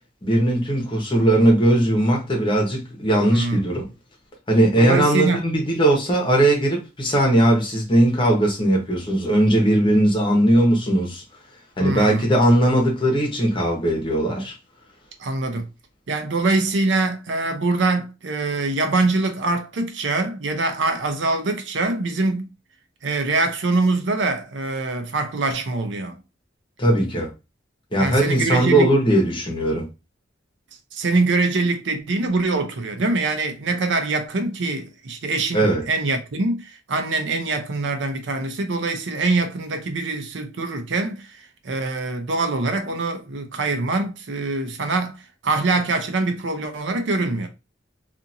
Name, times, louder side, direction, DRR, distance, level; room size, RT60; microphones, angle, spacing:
voice 1, 0.2-3.8 4.5-11.2 11.8-14.5 26.8-27.3 27.9-29.9 35.5-35.8, right 1 dB, 25° left, 1.0 m, -19 dB
voice 2, 3.3-3.6 4.8-5.4 11.8-12.3 15.2-15.7 16.1-22.5 23.0-26.2 28.0-28.9 30.9-47.5, right 3 dB, 75° right, 0.6 m, -24 dB
2.8 x 2.5 x 2.5 m
head